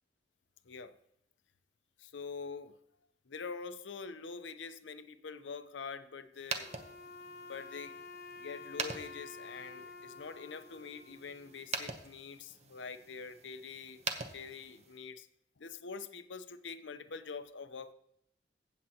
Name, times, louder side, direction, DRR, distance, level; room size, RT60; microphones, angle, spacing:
voice 1, 0.6-1.0 2.0-2.8 3.3-6.7 7.5-7.9 8.3-14.0 14.3-15.3 15.6-17.9, left 5 dB, 85° left, 11 dB, 0.7 m, -45 dB
sound 1, 6.3-15.1, right 4 dB, 35° right, 0.8 m, -44 dB
Wind instrument woodwind instrument, 6.6-11.8, left 3 dB, 50° left, 0.7 m, -50 dB
15.5 x 7.6 x 2.8 m, 0.77 s
head